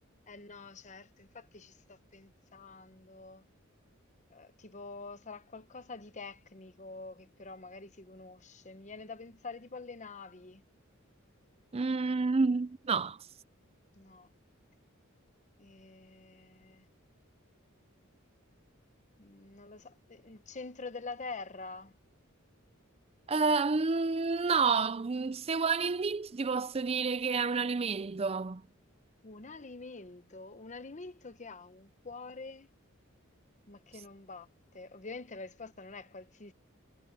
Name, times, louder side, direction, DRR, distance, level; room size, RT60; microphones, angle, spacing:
voice 1, 0.3-3.4 4.3-10.6 13.9-14.3 15.6-16.9 19.2-21.9 29.2-32.7 33.7-34.5 34.7-36.5, left 3 dB, 35° left, 1.0 m, -46 dB
voice 2, 11.7-13.2 23.3-28.6, right 4 dB, 30° right, 0.5 m, -29 dB
head